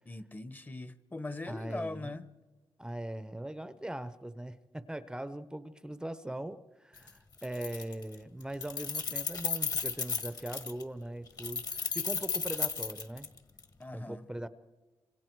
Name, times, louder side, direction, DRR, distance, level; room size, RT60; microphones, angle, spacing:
voice 1, 0.1-2.2 13.8-14.2, left 2 dB, 20° left, 14 dB, 1.0 m, -40 dB
voice 2, 1.5-2.2 2.8-13.3 13.9-14.5, right 1 dB, 10° right, 12 dB, 0.8 m, -40 dB
Keys jangling, 7.0-7.1 7.4-8.1 8.4-10.8 11.4-13.6, left 5 dB, 40° left, 1.7 m, -34 dB
28.5 x 26.5 x 4.7 m, 1.3 s
cardioid pair, 115°, 9 cm